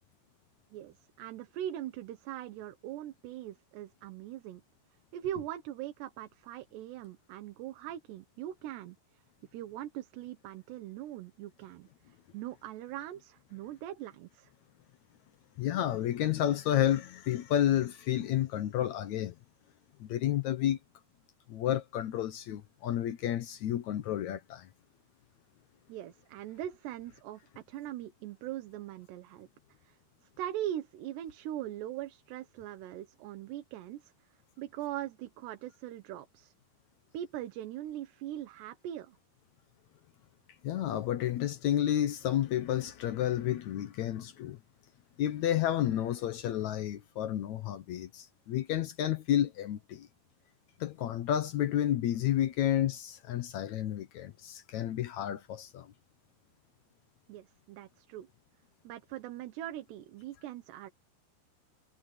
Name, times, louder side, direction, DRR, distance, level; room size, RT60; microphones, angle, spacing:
voice 1, 0.7-4.6 5.1-9.2 9.5-14.5 25.9-29.5 29.8-30.0 30.4-34.1 34.6-36.5 37.1-39.2 57.3-58.3 58.9-60.9, right 12 dB, 80° right, 3.4 m, -41 dB
voice 2, 15.6-19.3 20.0-20.8 21.5-24.7 40.6-44.6 45.2-50.1 50.8-55.9, left 11 dB, 85° left, 1.6 m, -31 dB
omnidirectional pair, 4.8 m